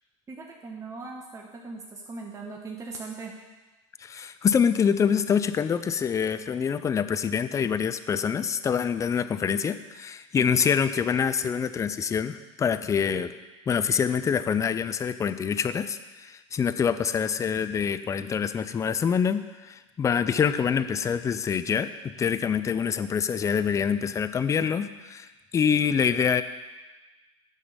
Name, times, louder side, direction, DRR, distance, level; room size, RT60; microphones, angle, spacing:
voice 1, 0.3-3.4 10.4-10.6, right 3 dB, 20° right, 0 dB, 1.0 m, -39 dB
voice 2, 4.0-13.3 13.7-26.4, left 7 dB, 20° left, 12 dB, 0.5 m, -26 dB
9.5 x 5.6 x 5.4 m, 1.2 s
hypercardioid pair, 90°, 17 cm